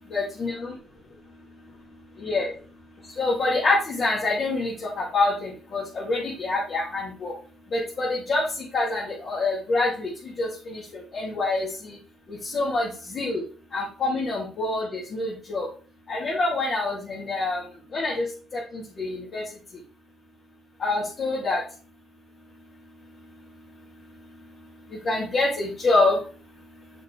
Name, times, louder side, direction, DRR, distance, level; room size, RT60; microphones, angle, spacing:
voice 1, 0.1-0.7 2.2-2.5 3.2-7.3 7.7-8.4 8.7-10.1 10.4-12.0 12.3-13.4 13.7-15.7 16.1-17.6 17.9-18.3 18.5-19.4 20.8-21.6 25.0-26.2, left 2 dB, 50° left, -7 dB, 2.7 m, -26 dB
6.6 x 6.4 x 3.5 m, 0.39 s
cardioid pair, 90°, 0 cm